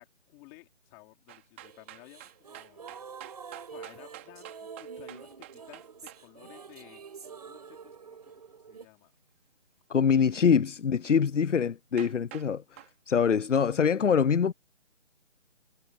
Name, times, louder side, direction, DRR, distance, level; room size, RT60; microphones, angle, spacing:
voice 1, 0.0-2.9 3.7-5.9 6.2-8.2 8.5-9.1 10.1-10.3, left 21 dB, 5° left, 3.0 m, -55 dB
sound 1, 1.3-6.2 11.6-11.7 12.0-12.5 12.8-12.9, right 17 dB, 10° right, 3.1 m, -47 dB
sound 2, 1.6-8.8, right 6 dB, 30° right, 5.6 m, -47 dB
voice 2, 9.9-14.5, left 6 dB, 70° left, 0.7 m, -24 dB
figure-of-eight pair, 175°, 38 cm